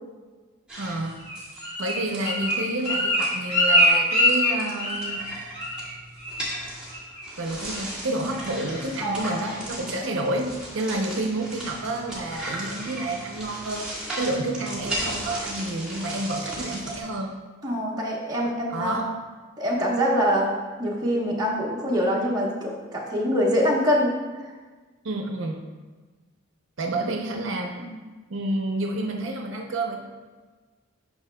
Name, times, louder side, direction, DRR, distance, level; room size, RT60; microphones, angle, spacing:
sound 1, 0.7-3.3 3.7-3.9 4.2-17.0, right 1 dB, 5° right, 1.7 m, -36 dB
voice 1, 0.8-1.1 1.8-5.2 7.4-17.3 18.7-19.1 25.0-25.6 26.8-27.7 28.3-30.0, right 2 dB, 70° right, 2 dB, 0.6 m, -29 dB
Bird, 1.2-5.3 5.5-5.9 6.2-6.5 6.9-7.3 7.7-7.8, equal, 30° left, 1.9 m, -23 dB
voice 2, 9.0-9.5 17.6-19.0 19.6-20.5 20.8-24.2 27.8-27.9, equal, 20° right, -4 dB, 1.1 m, -24 dB
9.5 x 6.0 x 2.2 m, 1.4 s
head